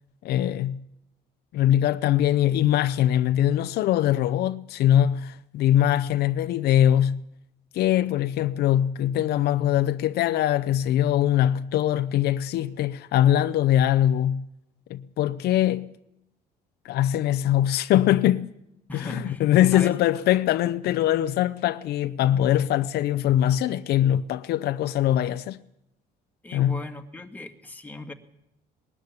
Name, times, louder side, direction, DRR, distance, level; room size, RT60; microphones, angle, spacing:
voice 1, 0.2-0.8 1.5-7.2 7.7-14.5 14.9-15.9 16.8-18.5 18.9-25.6 26.5-26.8, left 12 dB, 75° left, 0.7 m, -22 dB
voice 2, 18.9-19.5 19.7-19.9 26.4-28.1, left 2 dB, 10° left, 1.9 m, -37 dB
20.0 x 13.5 x 9.8 m
cardioid pair, 110°, 17 cm